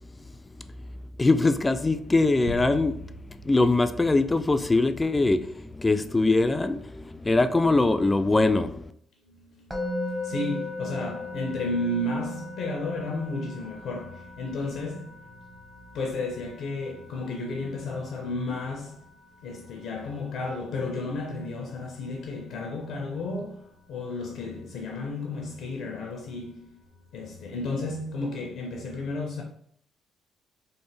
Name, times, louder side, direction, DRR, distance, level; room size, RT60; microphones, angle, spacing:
voice 1, 0.0-8.9, left 2 dB, 20° left, 0.3 m, -23 dB
sound 1, 2.5-5.1, right 4 dB, 80° right, 0.3 m, -41 dB
voice 2, 9.2-19.0 19.4-26.8 27.1-29.4, left 2 dB, 75° left, 0.5 m, -33 dB
Musical instrument, 9.7-20.8, left 1 dB, 15° right, 0.9 m, -38 dB
3.3 x 2.1 x 3.2 m
supercardioid pair, 55°, 0 cm